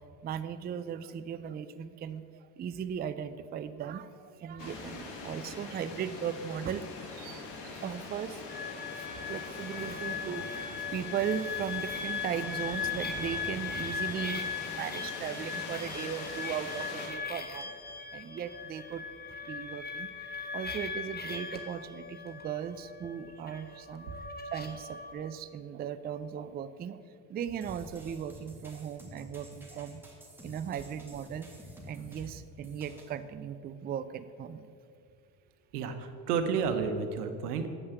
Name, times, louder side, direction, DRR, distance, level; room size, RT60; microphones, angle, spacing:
voice 1, 0.2-6.9 7.1-8.4 9.3-17.7 18.1-19.0 19.4-20.1 20.5-24.1 24.5-27.0 27.3-30.0 30.4-31.5 31.9-34.6, right 8 dB, 25° right, 12 dB, 0.4 m, -37 dB
sound 1, 4.6-17.1, left 3 dB, 70° left, 1.7 m, -43 dB
sound 2, 8.5-25.1, left 5 dB, 20° left, 1.0 m, -39 dB
sound 3, 27.6-33.1, equal, 5° right, 2.0 m, -50 dB
voice 2, 35.7-37.7, right 6 dB, 85° right, 7 dB, 0.9 m, -31 dB
8.2 x 5.5 x 6.7 m, 2.2 s
hypercardioid pair, 70°, 45 cm